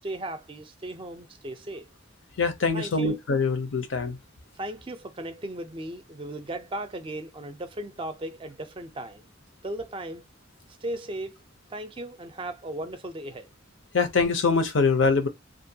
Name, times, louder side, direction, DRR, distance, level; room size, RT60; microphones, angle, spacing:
voice 1, 0.0-1.9 2.7-3.2 4.5-9.3 9.6-10.2 10.8-11.4 11.7-13.5, right 1 dB, 25° right, 0.4 m, -36 dB
voice 2, 2.4-4.2 13.9-15.3, left 4 dB, 80° left, 0.6 m, -23 dB
2.4 x 2.2 x 2.7 m
head